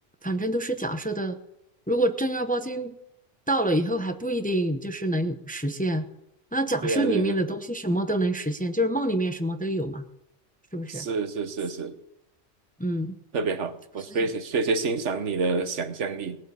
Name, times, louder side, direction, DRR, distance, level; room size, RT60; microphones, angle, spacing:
voice 1, 0.2-1.4 1.9-2.9 3.5-6.1 6.5-10.0 10.7-11.1 12.8-13.2 14.1-14.3, right 1 dB, 10° left, 8 dB, 0.8 m, -27 dB
voice 2, 6.8-7.4 10.9-12.0 13.3-16.4, right 4 dB, 75° right, 10 dB, 1.4 m, -28 dB
18.5 x 8.3 x 7.0 m, 0.86 s
omnidirectional pair, 1.2 m